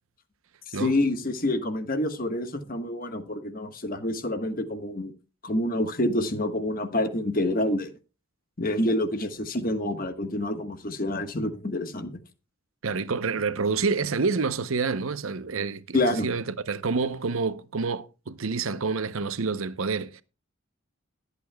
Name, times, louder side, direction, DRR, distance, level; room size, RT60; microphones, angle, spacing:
voice 1, 0.7-5.1 5.4-7.9 8.6-12.2 15.9-16.3, left 1 dB, 40° left, 1.3 m, -27 dB
voice 2, 12.8-20.2, right 4 dB, 75° right, 0.8 m, -28 dB
21.5 x 8.4 x 2.3 m
head